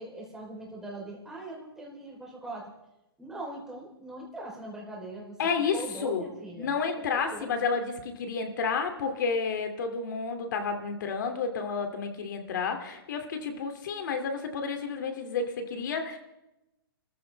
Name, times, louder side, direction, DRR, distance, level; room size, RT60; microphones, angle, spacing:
voice 1, 0.0-2.7 3.2-5.4 5.7-6.8 7.1-7.5, right 2 dB, 5° right, -3 dB, 3.7 m, -41 dB
voice 2, 5.4-6.2 6.6-16.2, left 5 dB, 50° left, 5 dB, 2.5 m, -31 dB
29.5 x 14.5 x 3.4 m, 0.92 s
hypercardioid pair, 165°, 13 cm